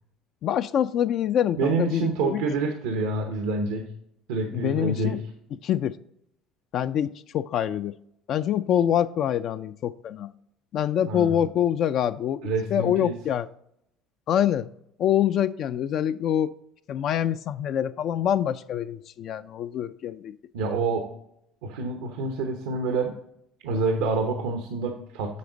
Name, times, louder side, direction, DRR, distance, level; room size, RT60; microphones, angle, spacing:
voice 1, 0.4-2.4 4.5-5.2 5.6-6.0 6.7-8.0 8.3-10.3 10.7-12.4 12.7-13.5 14.3-14.7 15.0-16.5 16.9-20.3, left 10 dB, 55° left, 0.3 m, -25 dB
voice 2, 1.6-3.9 4.3-5.2 11.1-11.4 12.4-13.1 20.5-21.1 21.6-23.1 23.6-25.4, right 3 dB, 90° right, 0.9 m, -27 dB
8.4 x 6.1 x 3.8 m
supercardioid pair, 95°, 0 cm